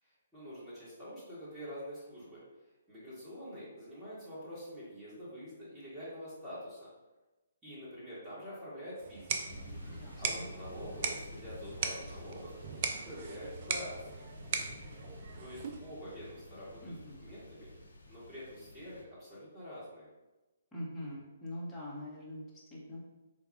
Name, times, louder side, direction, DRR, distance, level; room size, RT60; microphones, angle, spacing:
voice 1, 0.0-2.4 2.9-6.9 7.6-9.4 10.2-12.5 12.9-14.3 15.4-17.7 18.1-20.1, equal, 10° right, -11 dB, 1.2 m, -46 dB
sound 1, 9.0-16.0, right 5 dB, 40° right, 0.3 m, -39 dB
sound 2, 9.5-19.0, left 1 dB, 80° left, 0.5 m, -49 dB
voice 2, 9.9-10.5 16.8-17.2 20.7-23.0, left 1 dB, 10° left, -7 dB, 0.9 m, -43 dB
4.0 x 2.3 x 2.7 m, 1.1 s
figure-of-eight pair, 130°, 0 cm